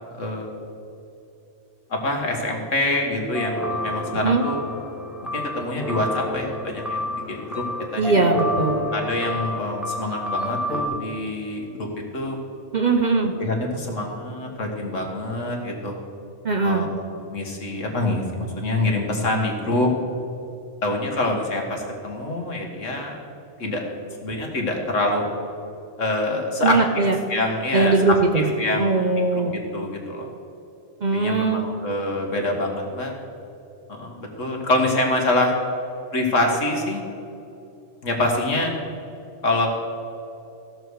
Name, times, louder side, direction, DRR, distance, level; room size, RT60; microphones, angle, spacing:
voice 1, 0.2-0.5 1.9-4.6 5.3-7.6 7.9-8.2 8.9-11.7 12.1-12.4 13.4-16.0 16.6-19.9 20.8-23.2 23.6-23.8 24.2-25.3 26.0-26.8 27.3-29.1 29.7-30.3 31.1-33.1 33.9-35.5 36.1-37.0 38.0-38.7 39.4-39.7, left 2 dB, 75° left, 1 dB, 2.0 m, -25 dB
sound 1, 3.3-10.9, left 1 dB, ahead, 0.8 m, -29 dB
voice 2, 8.0-8.9 12.7-13.3 16.4-16.9 26.6-27.2 27.7-28.5 28.8-29.6 31.0-31.7, right 3 dB, 40° right, 4 dB, 0.8 m, -20 dB
16.5 x 6.8 x 4.8 m, 2.9 s
omnidirectional pair, 1.3 m